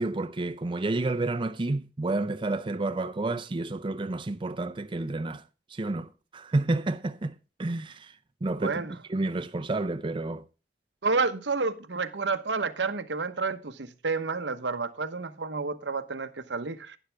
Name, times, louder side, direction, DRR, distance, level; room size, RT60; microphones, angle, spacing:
voice 1, 0.0-5.4 5.7-7.3 7.6-8.2 8.4-10.4, right 2 dB, 30° right, 0.5 m, -30 dB
voice 2, 8.6-8.9 11.0-17.0, right 4 dB, 90° right, 1.0 m, -30 dB
11.5 x 10.0 x 3.4 m
head